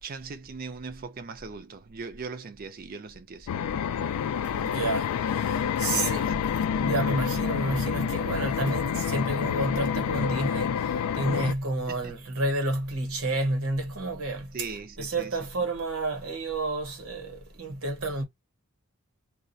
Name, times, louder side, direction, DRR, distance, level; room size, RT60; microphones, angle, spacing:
voice 1, 0.0-3.5 5.9-6.3 11.9-12.1 14.5-15.4, right 4 dB, 40° right, 0.4 m, -39 dB
sound 1, 3.5-11.5, left 7 dB, 80° left, 0.3 m, -28 dB
voice 2, 4.4-6.4 6.7-14.6 15.0-18.3, right 2 dB, 70° right, 0.9 m, -30 dB
2.3 x 2.0 x 2.6 m
head